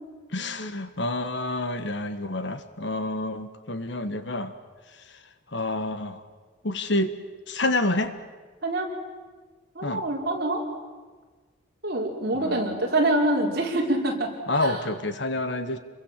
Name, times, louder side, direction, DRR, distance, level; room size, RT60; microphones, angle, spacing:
voice 1, 0.3-4.5 5.5-6.2 6.6-7.1 7.5-8.1 9.8-10.0 12.3-12.6 14.5-15.8, left 2 dB, 60° left, 10 dB, 1.5 m, -28 dB
voice 2, 9.7-10.6 11.8-14.3 14.6-14.8, right 1 dB, 50° right, -1 dB, 4.7 m, -25 dB
29.0 x 22.5 x 7.5 m, 1.4 s
head